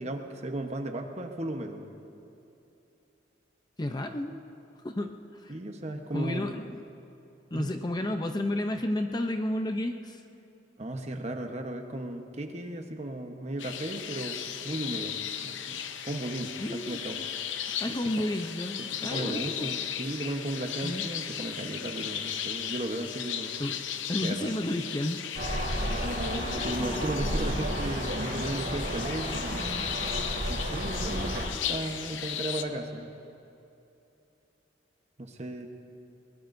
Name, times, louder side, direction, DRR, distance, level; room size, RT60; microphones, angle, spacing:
voice 1, 0.0-1.9 5.5-6.5 7.5-7.7 10.8-14.4 14.6-15.2 15.4-17.2 17.9-18.3 18.8-23.6 24.2-24.6 26.6-29.9 30.5-33.1 35.2-35.7, right 1 dB, 35° right, 4 dB, 1.0 m, -35 dB
voice 2, 3.8-4.4 4.8-5.2 5.4-5.5 6.1-6.8 7.5-10.2 16.6-17.3 17.8-19.7 20.8-21.0 23.6-23.8 24.1-25.6 31.1-31.4, left 1 dB, 20° left, 5 dB, 0.6 m, -32 dB
sound 1, 13.6-32.6, left 9 dB, 80° left, 0.7 m, -36 dB
sound 2, 25.3-31.5, equal, 75° right, 3.4 m, -32 dB
22.5 x 20.5 x 2.6 m, 2.8 s
head